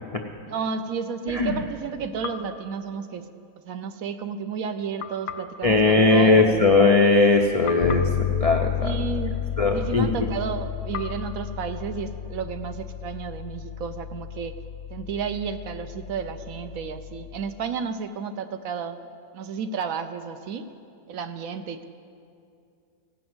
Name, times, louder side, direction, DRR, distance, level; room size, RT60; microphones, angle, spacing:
voice 1, 0.4-3.3 3.6-6.6 8.8-9.4 9.7-14.6 14.9-19.0 19.3-20.7 21.1-21.8, right 6 dB, 70° right, 9 dB, 1.0 m, -32 dB
voice 2, 1.3-1.6 5.6-9.0 9.6-10.1, left 3 dB, 50° left, 1 dB, 0.4 m, -19 dB
sound 1, 2.2-3.6 5.0-7.3 7.7-9.9 10.9-12.8, left 7 dB, 90° left, 1.3 m, -41 dB
Bass guitar, 7.8-17.6, left 9 dB, 65° left, 0.9 m, -32 dB
16.5 x 6.2 x 7.8 m, 2.4 s
omnidirectional pair, 1.6 m